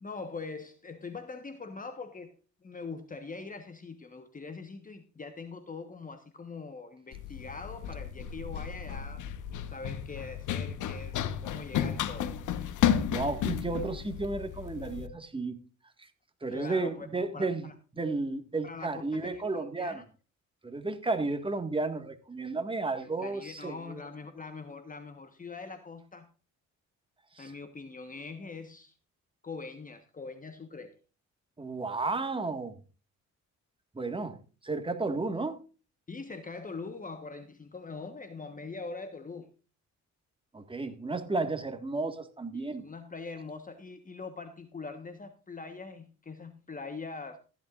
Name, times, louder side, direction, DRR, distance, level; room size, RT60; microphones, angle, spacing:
voice 1, 0.0-2.3 2.6-9.3 9.7-12.4 16.5-17.7 18.6-20.0 23.0-26.3 27.4-28.9 29.4-31.0 36.1-39.5 40.8-40.9 42.5-47.4, left 4 dB, 25° left, 1.3 m, -43 dB
Run, 7.1-15.1, left 9 dB, 80° left, 1.2 m, -33 dB
voice 2, 13.1-15.6 16.0-16.1 16.4-17.7 17.9-20.0 20.6-24.0 27.3-27.5 31.6-32.8 33.9-35.6 40.5-42.9, right 3 dB, 15° right, 1.8 m, -33 dB
15.0 x 11.0 x 2.5 m
cardioid pair, 90°, 30 cm